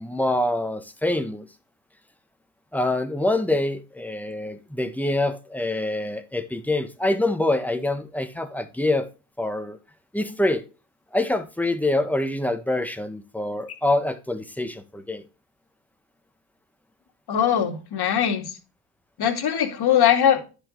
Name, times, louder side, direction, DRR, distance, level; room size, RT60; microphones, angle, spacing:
voice 1, 0.0-1.5 2.7-9.1 9.4-9.8 10.1-10.6 11.1-15.2, left 1 dB, 5° left, 1.5 m, -25 dB
voice 2, 17.3-18.5 19.2-20.5, left 9 dB, 60° left, 2.5 m, -21 dB
10.0 x 6.0 x 3.2 m
supercardioid pair, 70°, 43 cm